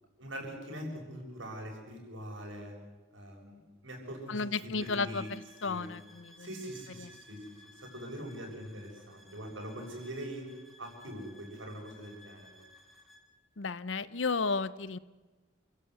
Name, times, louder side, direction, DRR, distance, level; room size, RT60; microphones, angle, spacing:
voice 1, 0.2-2.7 3.1-5.3 5.6-5.9 6.4-10.5 10.8-12.6, equal, 80° right, 0 dB, 7.3 m, -43 dB
voice 2, 4.3-6.5 7.0-7.2 13.6-15.0, left 4 dB, 75° left, 16 dB, 0.8 m, -33 dB
sound 1, 4.8-13.3, left 1 dB, ahead, 2.9 m, -58 dB
29.5 x 16.5 x 8.2 m, 1.3 s
head